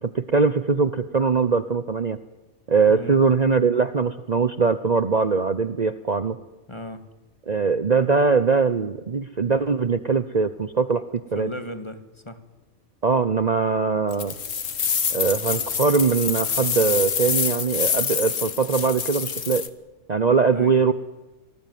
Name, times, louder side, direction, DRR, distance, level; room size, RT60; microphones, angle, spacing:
voice 1, 0.0-2.2 2.7-6.4 7.5-11.5 13.0-14.3 15.1-19.7 20.1-20.9, right 5 dB, 35° right, 12 dB, 1.0 m, -21 dB
voice 2, 2.9-3.2 6.7-7.0 11.3-12.4 20.5-20.8, equal, 20° left, 10 dB, 2.1 m, -36 dB
sound 1, 14.1-19.7, left 7 dB, 75° left, 1.7 m, -26 dB
26.0 x 20.0 x 9.5 m, 1.1 s
omnidirectional pair, 1.3 m